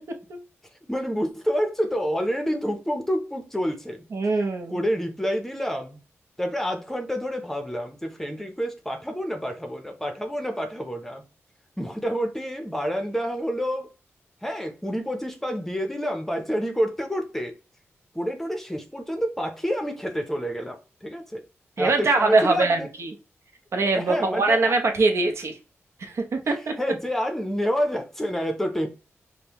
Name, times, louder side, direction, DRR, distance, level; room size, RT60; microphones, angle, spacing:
voice 1, 0.9-4.1 4.7-6.0 6.4-11.2 11.8-13.9 14.4-17.5 18.1-21.4 21.8-22.9 23.8-24.7 26.8-28.9, equal, 5° left, 0.7 m, -28 dB
voice 2, 4.1-4.8 21.8-23.1 23.7-25.6 26.0-26.7, right 3 dB, 65° right, 0.8 m, -22 dB
5.2 x 2.2 x 2.9 m
wide cardioid pair, 120°, 5 cm